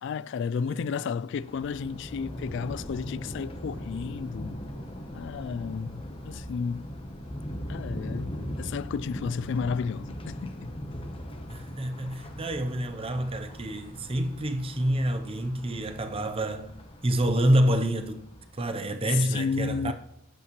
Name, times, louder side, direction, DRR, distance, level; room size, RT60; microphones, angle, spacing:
voice 1, 0.0-4.6 5.1-6.8 7.7-10.7 19.1-19.9, left 6 dB, 60° left, 0.3 m, -32 dB
Thunder, 1.4-18.7, equal, 30° left, 0.9 m, -40 dB
voice 2, 11.5-16.7 17.0-18.3 18.5-19.9, right 1 dB, 30° right, 0.7 m, -27 dB
11.5 x 8.5 x 3.1 m
head